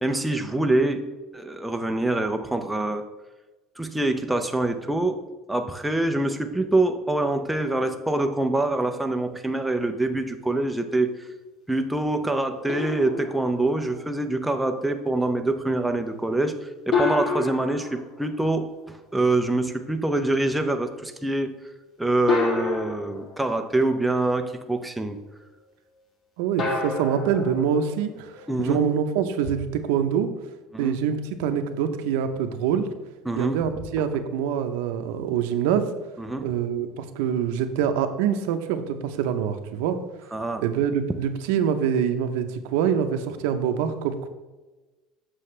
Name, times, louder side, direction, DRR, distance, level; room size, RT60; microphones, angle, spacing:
voice 1, 0.0-1.1 1.3-3.0 3.8-5.2 5.5-11.3 11.7-21.6 22.0-25.2 28.5-28.8 30.7-31.0 33.3-33.6 34.0-34.1 36.2-36.5 40.3-40.6, right 2 dB, 5° right, 5 dB, 0.5 m, -25 dB
sound 1, 12.7-14.1 16.9-18.9 20.6-20.7 22.3-24.1 26.6-28.6, left 4 dB, 35° left, 1.4 m, -29 dB
voice 2, 26.4-30.3 30.8-32.9 33.3-35.9 36.4-40.0 40.6-44.3, right 8 dB, 90° right, 8 dB, 0.7 m, -25 dB
7.7 x 6.2 x 3.2 m, 1.2 s
cardioid pair, 155°, 0 cm